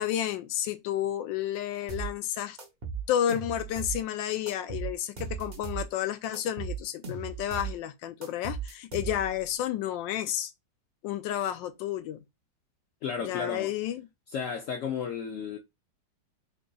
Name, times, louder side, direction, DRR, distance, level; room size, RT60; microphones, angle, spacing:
voice 1, 0.0-2.6 3.1-10.5 11.0-12.2 13.2-14.1, left 11 dB, 85° left, 1.3 m, -31 dB
sound 1, 1.9-2.1 2.6-4.0 4.5-5.9 6.3-7.8 8.2-9.4, right 6 dB, 45° right, 0.5 m, -36 dB
voice 2, 13.0-13.7 14.3-15.6, left 6 dB, 70° left, 0.7 m, -33 dB
3.8 x 3.7 x 2.3 m
omnidirectional pair, 2.0 m